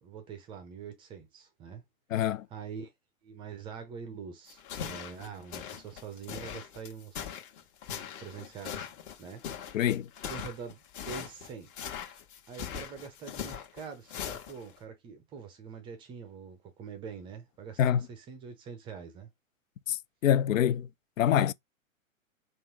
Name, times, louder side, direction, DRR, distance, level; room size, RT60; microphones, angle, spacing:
voice 1, 0.0-1.8 2.5-2.9 3.2-7.3 8.2-8.9 9.2-9.4 10.3-11.7 12.0-12.2 12.5-19.3, right 6 dB, 10° right, 0.5 m, -44 dB
voice 2, 2.1-2.5 9.7-10.1 17.8-18.1 19.9-20.9 21.2-21.5, left 10 dB, 70° left, 0.5 m, -25 dB
sound 1, 4.5-14.8, left 8 dB, 35° left, 1.4 m, -41 dB
3.7 x 2.4 x 4.5 m
hypercardioid pair, 135°, 42 cm